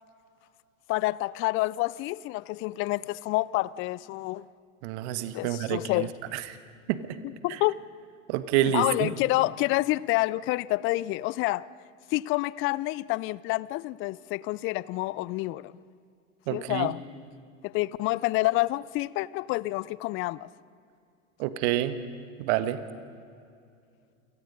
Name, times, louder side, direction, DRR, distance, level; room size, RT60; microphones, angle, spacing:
voice 1, 0.9-4.5 5.3-6.1 7.4-7.8 8.7-11.7 12.1-15.7 16.5-17.0 17.6-20.5, left 19 dB, 35° left, 0.4 m, -28 dB
voice 2, 4.8-6.4 6.9-7.2 7.5-7.6 8.3-9.1 16.5-16.9 21.4-22.0 22.4-22.8, right 12 dB, 55° right, 1.4 m, -28 dB
28.5 x 18.5 x 5.3 m
hypercardioid pair, 90°, 40 cm